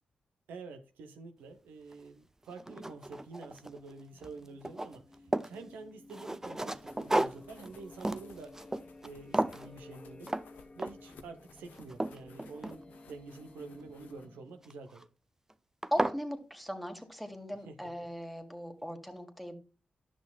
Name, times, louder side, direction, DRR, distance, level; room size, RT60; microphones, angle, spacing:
voice 1, 0.5-8.5 9.0-10.3 10.7-15.1 17.7-18.1, right 4 dB, 90° right, 0.9 m, -48 dB
sound 1, 1.9-2.0 2.5-3.9 4.2-5.6 6.1-9.1 9.3-9.7 10.3-10.5 10.8-11.2 11.6-13.2 14.6-15.0 15.5-15.6 15.8-16.2, right 1 dB, 15° right, 0.5 m, -34 dB
sound 2, 3.5-14.9, left 2 dB, 35° left, 1.2 m, -55 dB
sound 3, 6.7-14.3, left 5 dB, 90° left, 0.8 m, -60 dB
voice 2, 15.9-19.6, equal, ahead, 1.7 m, -38 dB
10.5 x 6.2 x 2.4 m
supercardioid pair, 45°, 3 cm